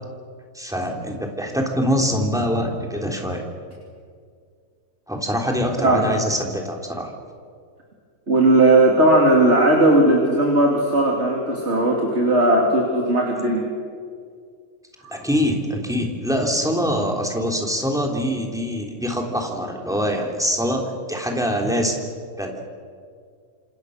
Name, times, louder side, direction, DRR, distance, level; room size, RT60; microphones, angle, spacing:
voice 1, 0.5-3.4 5.1-7.1 15.1-20.8 21.1-21.9 22.4-22.6, equal, ahead, 1 dB, 3.4 m, -24 dB
voice 2, 8.3-13.7 15.0-15.2, right 1 dB, 55° right, -1 dB, 3.1 m, -17 dB
27.5 x 27.0 x 6.6 m, 2.1 s
omnidirectional pair, 1.4 m